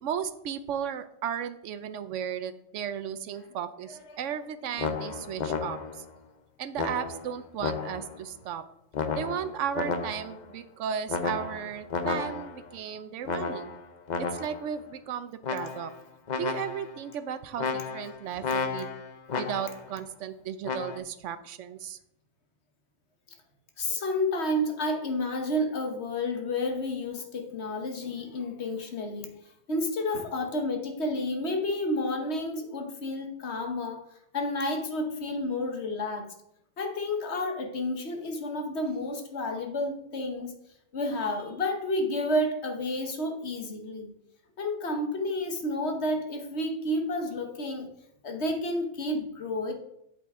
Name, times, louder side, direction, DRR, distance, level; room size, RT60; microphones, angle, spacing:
voice 1, 0.0-6.0 6.6-8.6 9.1-13.7 14.2-15.9 16.4-18.9 19.4-22.0, right 8 dB, 90° right, 11 dB, 1.0 m, -35 dB
voice 2, 3.9-4.2 18.3-18.4 23.8-29.3 29.7-34.0 34.3-36.3 36.8-40.5 40.9-44.1 44.6-47.9 48.2-49.7, left 1 dB, 65° left, 4 dB, 1.5 m, -30 dB
sound 1, 4.8-6.1 6.8-8.2 8.9-10.4 11.1-12.7 13.2-14.7 15.4-16.0 16.3-17.0 17.6-19.9 20.6-21.0, left 5 dB, 45° left, 0.7 m, -33 dB
8.1 x 7.7 x 3.7 m, 0.78 s
omnidirectional pair, 1.2 m